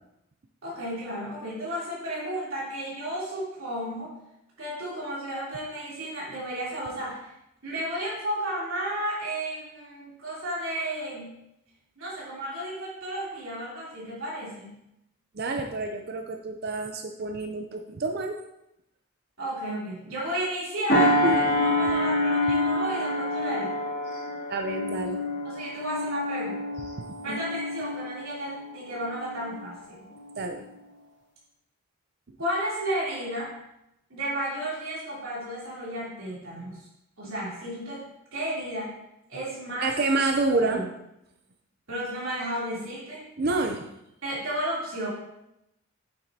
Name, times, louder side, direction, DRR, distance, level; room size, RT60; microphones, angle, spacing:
voice 1, 0.6-4.1 4.6-7.3 7.6-11.3 12.0-14.7 19.4-23.8 25.4-26.8 27.2-30.0 32.4-33.5 34.1-36.9 37.2-38.0 38.3-38.9 39.3-39.9 40.5-40.9 41.9-43.3 44.2-45.1, right 1 dB, 70° right, -7 dB, 3.2 m, -33 dB
voice 2, 15.3-18.4 21.2-21.4 24.5-25.2 27.1-27.4 30.4-30.7 39.8-40.8 43.4-43.9, right 3 dB, 45° right, 4 dB, 0.5 m, -28 dB
sound 1, 20.9-29.7 30.2-30.4, left 1 dB, 50° left, 2.7 m, -27 dB
8.9 x 7.8 x 2.8 m, 0.86 s
head